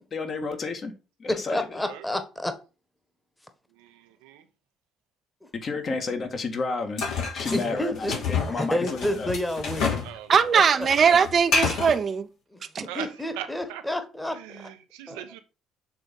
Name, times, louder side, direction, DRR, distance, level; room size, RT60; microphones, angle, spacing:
voice 1, 0.1-0.9 1.2-1.8 5.5-7.1 7.3-9.3, left 4 dB, 45° left, 1.8 m, -31 dB
voice 2, 1.3-2.5 5.7-5.8 7.5-8.1 8.6-10.0 10.5-10.9 12.5-14.4 15.1-15.2, left 1 dB, 10° left, 1.5 m, -30 dB
voice 3, 3.7-4.4 10.0-10.6 12.8-13.8 14.3-15.4, right 11 dB, 85° right, 0.9 m, -40 dB
sound 1, 7.0-10.1 10.4-12.0, left 5 dB, 70° left, 2.8 m, -28 dB
voice 4, 10.3-12.3 12.7-12.8, right 6 dB, 45° right, 0.7 m, -20 dB
6.8 x 3.5 x 5.4 m
supercardioid pair, 65°, 0 cm